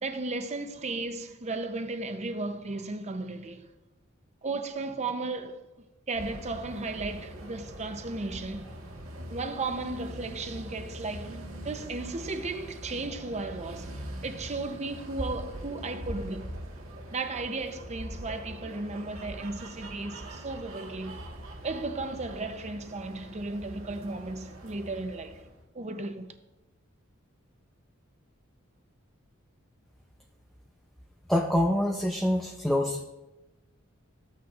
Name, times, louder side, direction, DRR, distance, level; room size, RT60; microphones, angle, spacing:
voice 1, 0.0-3.7 4.4-5.6 6.1-8.7 9.3-16.5 17.1-21.2 21.6-25.4 25.7-26.3, right 3 dB, 35° right, 0.7 m, -35 dB
sound 1, 6.1-25.6, right 1 dB, 90° right, 1.6 m, -42 dB
voice 2, 31.3-33.0, left 1 dB, ahead, 0.6 m, -25 dB
14.5 x 8.5 x 2.5 m
head